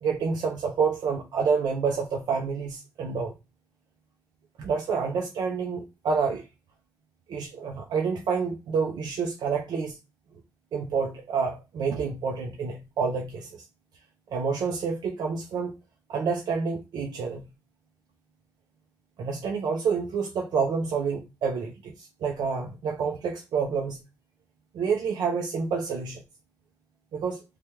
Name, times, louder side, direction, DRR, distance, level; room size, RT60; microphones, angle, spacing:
voice 1, 0.0-3.3 4.6-6.4 7.3-10.0 10.7-13.5 14.3-15.7 16.1-17.4 19.2-24.0 24.7-26.2 27.1-27.4, right 5 dB, 80° right, 0.6 m, -28 dB
3.2 x 2.2 x 2.9 m
wide cardioid pair, 145°, 7 cm